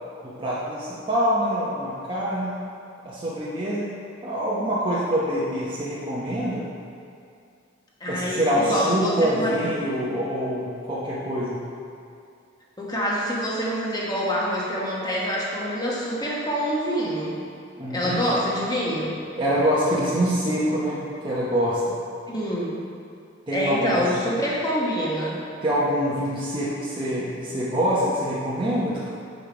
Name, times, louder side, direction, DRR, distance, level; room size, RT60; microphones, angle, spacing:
voice 1, 0.2-2.6 3.0-3.9 4.2-6.7 8.1-11.6 17.8-18.2 19.3-21.8 23.5-24.0 25.6-29.0, equal, 25° right, -9 dB, 0.8 m, -25 dB
voice 2, 8.0-9.8 12.8-17.4 17.9-19.2 22.3-22.8 23.5-25.4, equal, 20° left, -5 dB, 1.2 m, -26 dB
5.2 x 5.0 x 5.0 m, 2.4 s
head